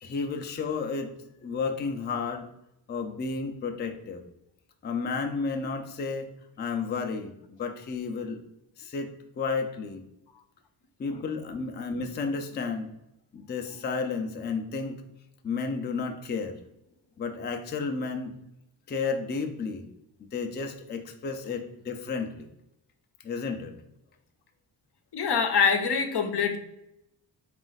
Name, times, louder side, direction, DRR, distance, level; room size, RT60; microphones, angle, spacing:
voice 1, 0.0-1.1 1.4-2.5 2.9-4.2 4.8-6.3 6.6-8.4 8.8-10.0 11.0-12.9 13.3-15.0 15.4-16.6 17.2-18.3 18.9-19.9 20.3-22.5 23.2-23.8, left 4 dB, 25° left, 5 dB, 0.4 m, -32 dB
voice 2, 25.1-26.6, left 6 dB, 65° left, 6 dB, 0.7 m, -25 dB
3.9 x 2.5 x 3.9 m, 0.85 s
cardioid pair, 95°, 44 cm